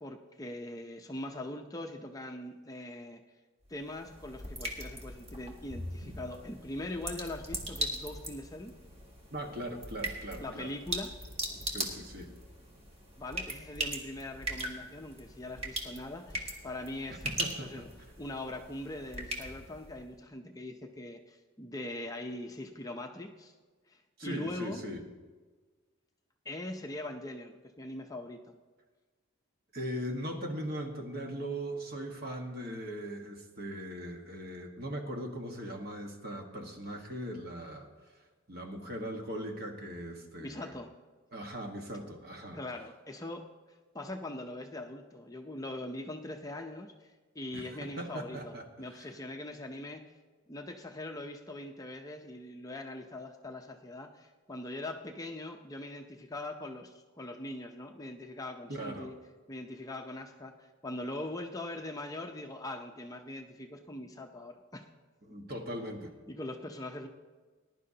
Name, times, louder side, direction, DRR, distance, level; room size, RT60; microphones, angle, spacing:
voice 1, 0.0-3.2 3.7-8.7 10.4-11.1 13.2-17.9 18.2-23.5 23.9-24.8 26.4-28.5 40.4-40.9 42.5-43.4 43.9-50.0 50.5-59.2 59.5-64.9 66.3-67.1, left 1 dB, 15° left, 3 dB, 0.6 m, -42 dB
sound 1, 3.6-20.1, right 1 dB, 30° right, 1.7 m, -40 dB
voice 2, 9.3-10.7 11.7-12.3 17.1-17.9 24.2-25.0 29.7-37.9 38.5-40.7 41.3-42.6 47.5-48.6 48.9-49.1 58.7-59.1 65.2-66.1, equal, 45° right, 2 dB, 1.5 m, -39 dB
20.0 x 11.0 x 2.8 m, 1.4 s
head